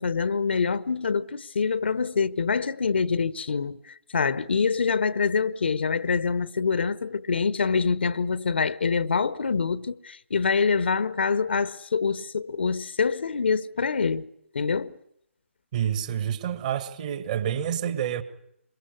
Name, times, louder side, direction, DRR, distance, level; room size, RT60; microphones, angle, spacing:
voice 1, 0.0-14.3 14.5-15.0, left 5 dB, 55° left, 1.1 m, -25 dB
voice 2, 15.7-18.2, right 9 dB, 35° right, 1.9 m, -28 dB
27.0 x 23.0 x 9.6 m
figure-of-eight pair, 140°, 7 cm